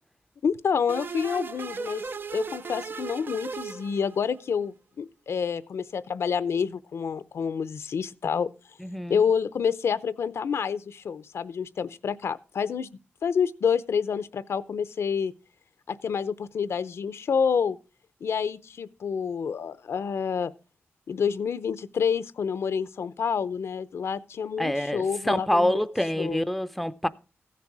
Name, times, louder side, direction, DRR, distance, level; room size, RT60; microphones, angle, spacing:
voice 1, 0.4-2.0 2.3-8.5 9.1-12.9 13.2-15.3 15.9-17.8 18.2-20.5 21.1-25.8 26.2-26.4, left 6 dB, 80° left, 0.7 m, -28 dB
sound 1, 0.9-4.5, right 5 dB, 50° right, 0.4 m, -37 dB
voice 2, 8.8-9.2 24.6-27.1, equal, ahead, 0.5 m, -26 dB
15.5 x 6.8 x 4.7 m
wide cardioid pair, 95°, 4 cm